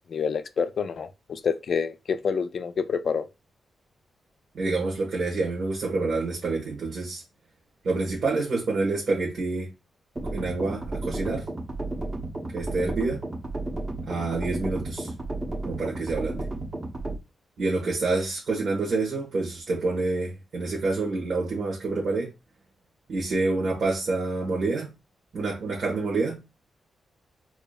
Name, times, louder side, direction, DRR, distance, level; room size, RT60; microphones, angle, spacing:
voice 1, 0.1-3.3, left 6 dB, 55° left, 0.4 m, -28 dB
voice 2, 4.5-7.2 7.8-9.7 10.2-11.5 12.5-13.2 14.0-15.1 15.6-16.5 17.6-22.3 23.1-24.9 25.3-26.4, right 3 dB, 60° right, 1.3 m, -27 dB
sound 1, 10.2-17.2, right 2 dB, 25° right, 0.9 m, -33 dB
4.8 x 2.7 x 2.4 m
wide cardioid pair, 120°, 0 cm